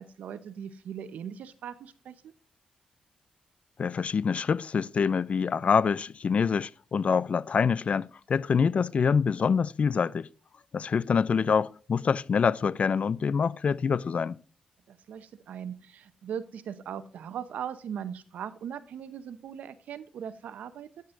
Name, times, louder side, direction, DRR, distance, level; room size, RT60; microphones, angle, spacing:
voice 1, 0.0-2.3 14.9-20.9, right 8 dB, 85° right, 0.8 m, -39 dB
voice 2, 3.8-10.3 10.7-14.4, left 6 dB, 55° left, 0.4 m, -26 dB
9.7 x 9.2 x 2.6 m
cardioid pair, 60°, 3 cm